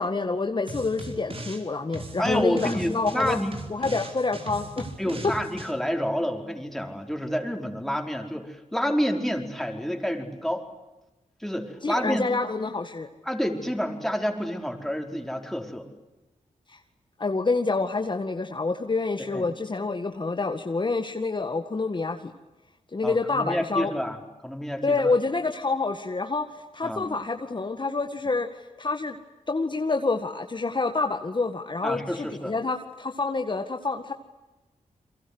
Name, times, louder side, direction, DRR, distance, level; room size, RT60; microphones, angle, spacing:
voice 1, 0.0-3.4 3.7-4.9 11.8-13.1 16.7-16.8 17.2-22.3 22.9-23.9 24.8-28.5 28.8-29.2 29.5-34.1, left 3 dB, 35° left, 5 dB, 1.9 m, -27 dB
sound 1, 0.7-1.6 1.9-5.7, right 2 dB, 45° right, 4.9 m, -38 dB
voice 2, 2.2-3.5 5.0-10.6 11.4-12.3 13.2-15.9 19.3-19.5 23.0-24.2 24.4-25.1 26.8-27.1 31.8-32.5, equal, ahead, 3 dB, 4.8 m, -29 dB
30.0 x 23.5 x 8.1 m, 1.1 s
cardioid pair, 70°, 13 cm